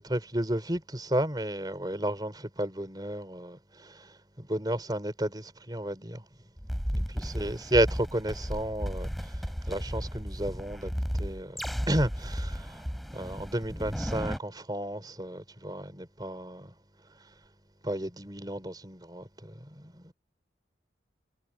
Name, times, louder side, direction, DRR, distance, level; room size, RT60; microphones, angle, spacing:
voice 1, 0.0-6.3 6.9-9.3 9.7-11.6 11.9-12.8 13.1-16.7 17.8-20.1, right 1 dB, 20° right, 3.8 m, -32 dB
sound 1, 6.6-14.4, equal, ahead, 7.2 m, -34 dB
head